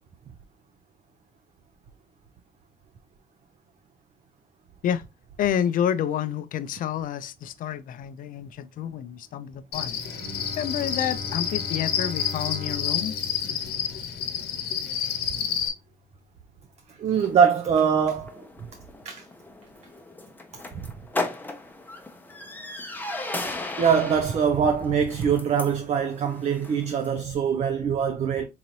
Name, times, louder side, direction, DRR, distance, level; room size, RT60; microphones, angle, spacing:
voice 1, 5.4-10.0 10.6-13.2, left 9 dB, 55° left, 0.4 m, -29 dB
Cricket, 9.7-15.7, left 8 dB, 70° left, 0.9 m, -29 dB
Bowed string instrument, 10.0-15.3, left 2 dB, 75° right, 1.0 m, -40 dB
voice 2, 17.0-18.4 19.0-19.2 23.8-28.5, right 7 dB, 40° right, 0.5 m, -23 dB
sound 1, 17.1-27.2, left 2 dB, 10° left, 0.6 m, -37 dB
3.9 x 3.0 x 2.6 m
cardioid pair, 110°, 17 cm